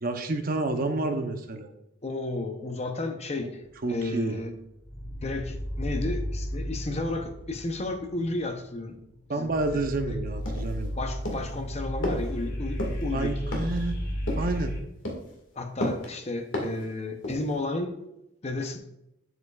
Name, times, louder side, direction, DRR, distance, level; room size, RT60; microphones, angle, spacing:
voice 1, 0.0-1.7 3.4-3.5 3.8-4.4 9.3-11.0 13.1-14.0 14.3-14.7, right 2 dB, 45° right, 6 dB, 0.7 m, -29 dB
voice 2, 2.0-3.6 3.9-4.5 5.2-9.0 9.3-10.2 11.0-13.3 15.6-18.0 18.4-18.8, left 2 dB, 30° left, 6 dB, 0.7 m, -33 dB
sound 1, 3.6-4.4 4.8-14.8, equal, 50° left, 1.4 m, -34 dB
sound 2, 10.4-10.9 11.2-11.6 12.0-12.3 12.8-13.0 13.5-13.8 14.3-14.6 15.0-15.3 15.8-16.1 16.5-16.8 17.2-17.6, left 1 dB, 70° left, 1.9 m, -32 dB
7.9 x 7.7 x 2.4 m, 0.87 s
head